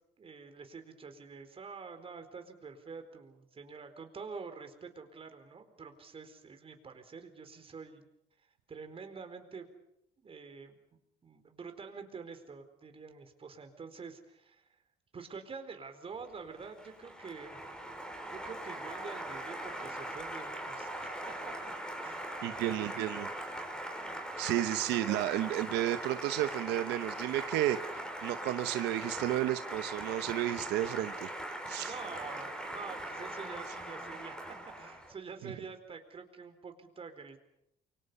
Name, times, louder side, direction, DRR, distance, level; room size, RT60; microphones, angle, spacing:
voice 1, 0.2-8.0 8.7-9.7 10.2-10.8 11.2-14.7 15.1-17.8 18.3-21.5 22.0-22.2 25.0-25.3 31.9-34.4 34.7-37.4, right 5 dB, 35° right, 7 dB, 4.3 m, -47 dB
Applause, 16.3-35.1, right 1 dB, 5° left, 5.9 m, -41 dB
voice 2, 22.4-23.3 24.4-31.3 31.7-31.9 35.4-35.5, right 13 dB, 85° right, 9 dB, 1.1 m, -32 dB
29.0 x 24.5 x 5.6 m, 0.79 s
cardioid pair, 110°, 17 cm